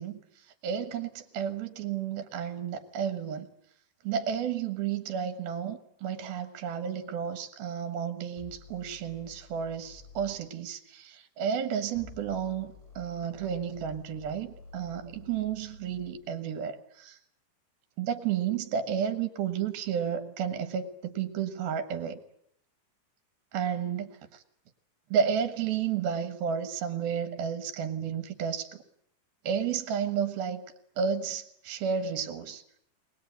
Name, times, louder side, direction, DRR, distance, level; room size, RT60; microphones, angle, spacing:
voice 1, 0.0-3.5 4.0-17.2 18.0-22.2 23.5-24.4 25.1-28.8 29.4-30.6 31.0-32.6, right 7 dB, 80° right, 8 dB, 3.1 m, -32 dB
sound 1, 8.4-10.4 11.8-16.2, left 4 dB, 10° left, 7.7 m, -51 dB
23.0 x 19.5 x 9.1 m, 0.71 s
omnidirectional pair, 4.3 m